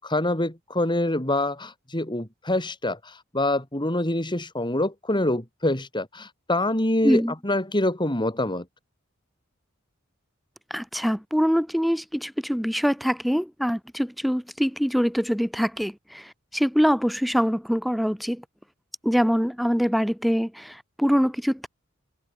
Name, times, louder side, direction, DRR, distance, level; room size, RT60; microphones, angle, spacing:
voice 1, 0.0-8.6, left 1 dB, 25° left, 4.8 m, -25 dB
voice 2, 10.7-18.4 19.0-21.7, equal, ahead, 7.7 m, -24 dB
open air
head